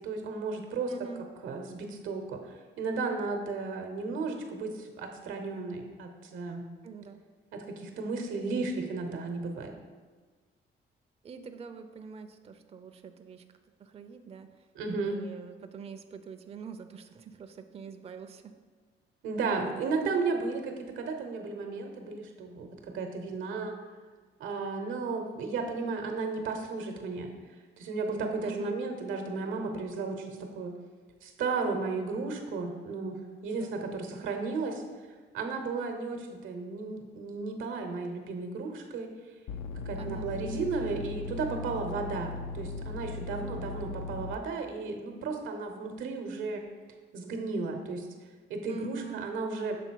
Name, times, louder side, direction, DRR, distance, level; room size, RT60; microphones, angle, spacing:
voice 1, 0.0-0.9 1.4-6.7 7.5-9.7 14.8-15.2 19.2-23.8 24.4-27.3 27.8-30.8 31.2-34.8 35.3-39.1 39.8-46.6 47.1-48.1 48.5-49.8, right 4 dB, 85° right, 5 dB, 0.8 m, -34 dB
voice 2, 0.9-1.3 6.8-7.2 11.2-13.4 13.8-14.7 15.0-18.5 28.4-28.8 33.5-33.8 39.9-40.3 43.3-43.5 48.7-49.3, right 6 dB, 30° right, 8 dB, 0.4 m, -44 dB
sound 1, 39.5-44.4, left 3 dB, 80° left, 0.4 m, -38 dB
6.9 x 3.6 x 4.6 m, 1.5 s
cardioid pair, 90°, 20 cm